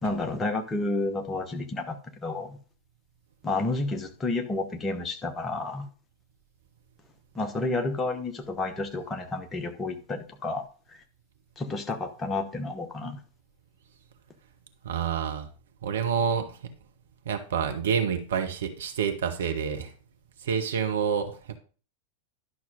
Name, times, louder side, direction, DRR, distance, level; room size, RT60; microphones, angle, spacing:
voice 1, 0.0-2.6 3.4-5.9 7.3-10.6 10.9-11.0 11.6-13.2, left 2 dB, 20° left, 6 dB, 1.2 m, -30 dB
voice 2, 14.8-15.5 15.8-16.7 17.3-19.9 20.4-21.3, right 7 dB, 65° right, 6 dB, 1.0 m, -28 dB
11.0 x 6.0 x 3.7 m, 0.39 s
figure-of-eight pair, 90°, 0 cm